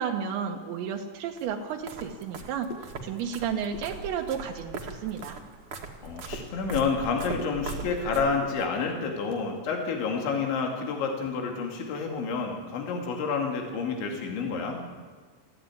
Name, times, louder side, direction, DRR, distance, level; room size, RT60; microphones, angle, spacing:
voice 1, 0.0-2.7 3.0-5.4, right 7 dB, 80° right, 1 dB, 3.4 m, -32 dB
sound 1, 1.4-8.7, right 4 dB, 45° right, 1.9 m, -40 dB
sound 2, 2.7-3.4 3.6-4.4 4.9-5.4 5.8-8.0 8.3-9.5 9.9-11.4 11.7-11.8 12.2-12.4 12.7-13.0, left 2 dB, 55° left, 6.3 m, -46 dB
voice 2, 6.0-14.8, left 5 dB, 85° left, 1 dB, 4.8 m, -29 dB
21.5 x 15.0 x 9.8 m, 1.5 s
omnidirectional pair, 5.1 m